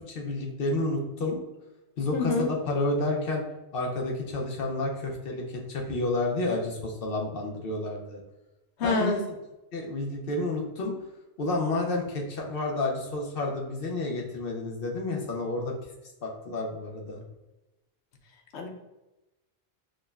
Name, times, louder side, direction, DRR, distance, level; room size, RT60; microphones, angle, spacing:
voice 1, 0.1-1.4 2.0-3.4 3.7-8.2 8.8-9.2 9.7-10.9 11.4-15.7 16.2-17.2, left 2 dB, 60° left, 0 dB, 0.8 m, -30 dB
voice 2, 2.1-2.5 8.8-9.2 18.5-18.7, left 3 dB, 90° left, 2 dB, 1.0 m, -26 dB
6.1 x 2.1 x 2.3 m, 1.0 s
omnidirectional pair, 1.1 m